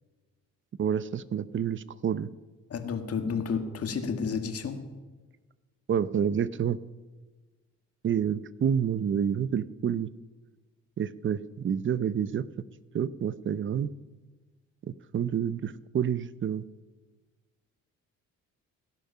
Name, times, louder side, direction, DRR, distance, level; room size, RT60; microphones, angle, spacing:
voice 1, 0.8-2.3 5.9-6.8 8.0-10.1 11.0-12.4 12.9-13.9 14.9-16.6, right 8 dB, 40° right, 17 dB, 0.7 m, -28 dB
voice 2, 2.7-4.9, left 5 dB, 50° left, 7 dB, 1.8 m, -31 dB
17.0 x 10.5 x 5.6 m, 1.3 s
cardioid pair, 90°, 30 cm